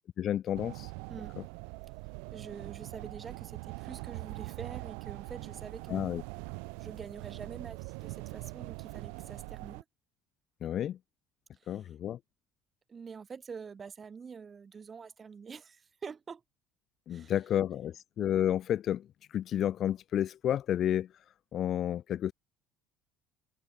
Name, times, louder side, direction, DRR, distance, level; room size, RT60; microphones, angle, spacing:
voice 1, 0.2-0.9 5.9-6.2 10.6-11.0 11.7-12.2 17.1-21.1 21.5-22.3, left 10 dB, 40° left, 0.5 m, -31 dB
sound 1, 0.5-9.8, right 40 dB or more, 85° right, 0.3 m, -43 dB
voice 2, 2.3-6.2 6.8-9.8 11.6-11.9 12.9-16.4 17.1-17.4, right 6 dB, 20° right, 3.8 m, -46 dB
open air
cardioid pair, 155°, 0 cm